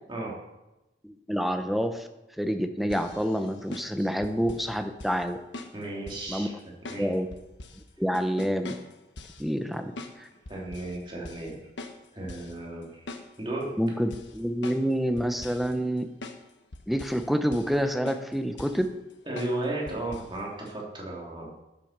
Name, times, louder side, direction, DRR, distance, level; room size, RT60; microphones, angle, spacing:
voice 1, 1.0-2.1 2.4-5.4 6.3-6.5 7.0-7.3 8.0-8.8 9.4-9.9 10.2-10.3 13.8-16.1 16.9-18.9, equal, ahead, 7 dB, 0.7 m, -27 dB
sound 1, 2.9-4.7 5.0-5.2 5.5-6.3 6.8-7.8 8.1-9.4 10.0-10.2 10.5-11.0 11.2-11.5 11.8-12.5 12.8-13.6 14.1-14.9 15.2-15.7 16.2-16.4 16.7-17.3 17.5-17.8 18.1-18.9 19.4-19.6 19.9-20.3 20.7-20.8, left 2 dB, 85° left, 1.2 m, -42 dB
voice 2, 5.7-6.5 6.9-7.1 10.5-11.6 12.1-13.0 13.4-13.7 19.3-21.5, right 2 dB, 25° right, -3 dB, 2.9 m, -34 dB
10.5 x 8.9 x 6.6 m, 0.98 s
head